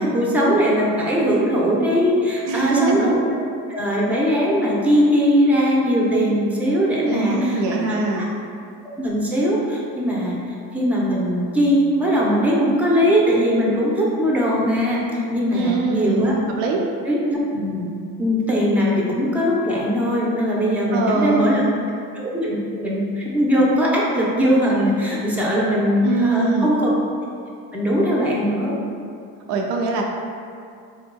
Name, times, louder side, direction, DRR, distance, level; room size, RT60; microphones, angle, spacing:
voice 1, 0.0-3.4 3.7-8.3 9.0-10.4 10.7-16.3 17.0-17.9 18.2-21.6 22.1-26.9 27.7-28.8, equal, 5° right, -5 dB, 0.7 m, -20 dB
voice 2, 2.5-3.1 7.0-8.3 15.5-16.2 16.6-16.8 20.9-21.8 26.0-26.7 29.5-30.0, right 3 dB, 70° right, 1 dB, 0.5 m, -22 dB
3.4 x 2.7 x 2.2 m, 2.4 s
supercardioid pair, 60°, 43 cm